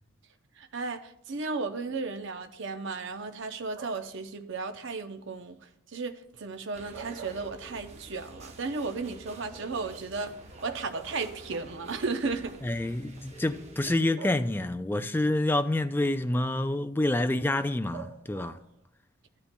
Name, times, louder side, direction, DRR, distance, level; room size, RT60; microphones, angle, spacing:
voice 1, 0.6-5.6 5.9-10.3 10.6-12.6, right 4 dB, 60° right, 0.6 m, -34 dB
sound 1, 3.7-4.2 6.7-8.1 8.5-8.6 10.1-10.2 10.6-11.8 12.8-12.9 14.2-14.9 17.9-18.8, right 6 dB, 80° right, 1.2 m, -45 dB
sound 2, 6.7-14.0, right 2 dB, 30° right, 0.8 m, -49 dB
sound 3, 6.9-7.8 8.9-10.0 11.1-12.2 13.3-14.3, equal, 30° left, 2.7 m, -52 dB
voice 2, 12.6-18.6, left 1 dB, 10° left, 0.3 m, -28 dB
14.0 x 9.7 x 2.2 m
head